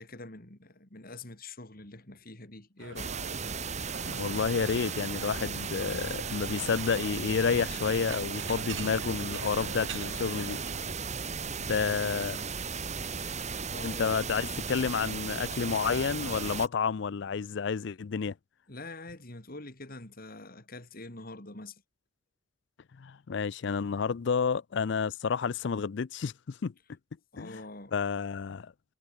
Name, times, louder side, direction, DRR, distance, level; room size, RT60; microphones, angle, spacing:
voice 1, 0.0-3.2 11.6-12.4 13.7-14.2 17.9-18.0 18.7-21.8 27.3-27.9, left 2 dB, 50° left, 3.4 m, -45 dB
sound 1, 2.8-10.9, right 5 dB, 75° right, 1.5 m, -44 dB
sound 2, 3.0-16.7, right 5 dB, 35° right, 2.2 m, -36 dB
voice 2, 4.0-10.6 11.7-12.4 13.8-18.3 23.0-26.7 27.4-27.6 27.9-28.7, left 6 dB, 65° left, 0.5 m, -30 dB
head